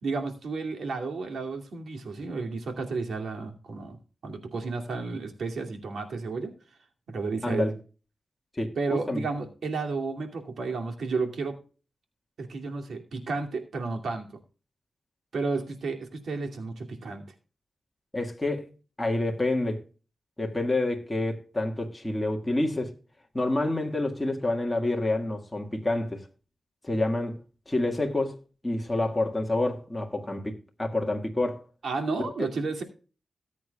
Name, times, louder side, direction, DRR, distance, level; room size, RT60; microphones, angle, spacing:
voice 1, 0.0-4.0 4.2-6.5 7.1-7.8 8.8-11.6 12.4-14.3 15.3-17.2 31.8-32.8, right 4 dB, 85° right, 2.5 m, -32 dB
voice 2, 8.5-9.2 18.1-18.7 19.0-19.8 20.4-22.9 23.3-26.2 26.8-27.4 27.7-28.4 28.6-31.6, left 2 dB, 15° left, 1.8 m, -28 dB
18.5 x 8.4 x 2.3 m
wide cardioid pair, 115°, 0 cm